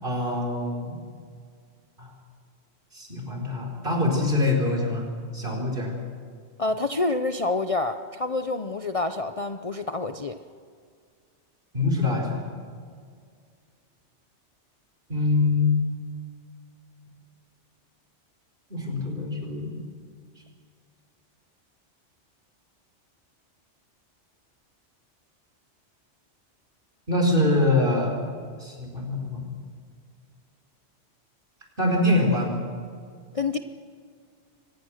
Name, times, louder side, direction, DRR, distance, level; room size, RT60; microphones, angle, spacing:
voice 1, 0.0-1.0 2.0-2.1 2.9-5.0 5.3-5.9 11.7-12.4 15.1-15.8 18.7-19.8 27.1-28.1 28.6-29.4 31.8-32.6, left 2 dB, 45° right, 1 dB, 5.1 m, -24 dB
voice 2, 6.6-10.4 33.3-33.6, left 3 dB, 35° left, 7 dB, 0.7 m, -27 dB
25.0 x 19.5 x 6.5 m, 2.1 s
omnidirectional pair, 1.2 m